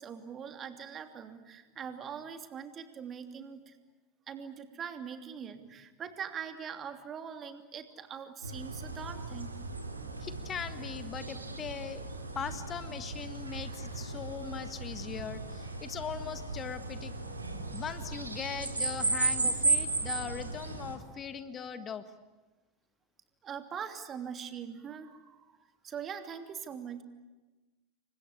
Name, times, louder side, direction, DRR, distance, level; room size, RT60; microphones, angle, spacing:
voice 1, 0.0-3.8 4.3-9.5 23.4-25.5 25.8-27.0, right 7 dB, 30° right, 7 dB, 2.9 m, -42 dB
sound 1, 8.4-21.0, right 3 dB, 85° right, 2.8 m, -35 dB
voice 2, 10.2-12.1 12.4-17.1 17.7-22.0, left 7 dB, 30° left, 10 dB, 1.8 m, -40 dB
29.0 x 24.5 x 8.5 m, 1.2 s
figure-of-eight pair, 80°, 0 cm